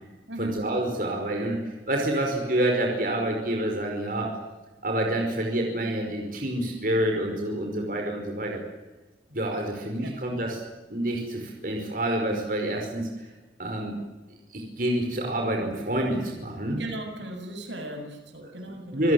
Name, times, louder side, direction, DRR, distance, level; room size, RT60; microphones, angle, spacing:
voice 1, 0.4-4.4 4.8-8.6 9.3-10.6 10.9-13.3 13.6-14.0 14.5-16.8 18.4-18.5 18.9-19.1, right 1 dB, 50° right, 1 dB, 5.1 m, -27 dB
voice 2, 16.8-19.1, right 1 dB, 85° right, 4 dB, 7.3 m, -37 dB
28.0 x 17.5 x 9.5 m, 1.2 s
head